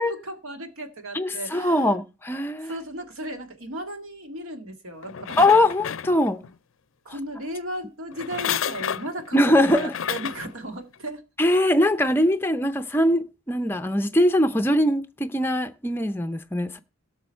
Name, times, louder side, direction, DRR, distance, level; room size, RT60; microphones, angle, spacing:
voice 1, 0.0-2.0 2.6-5.4 7.1-11.2, right 1 dB, 80° right, 1.8 m, -35 dB
voice 2, 1.1-2.7 5.4-6.4 9.3-9.9 11.4-16.8, left 1 dB, 10° left, 0.5 m, -21 dB
sound 1, 5.0-6.5 8.1-10.5 11.1-11.2, left 9 dB, 70° left, 0.5 m, -31 dB
17.0 x 6.2 x 4.4 m
head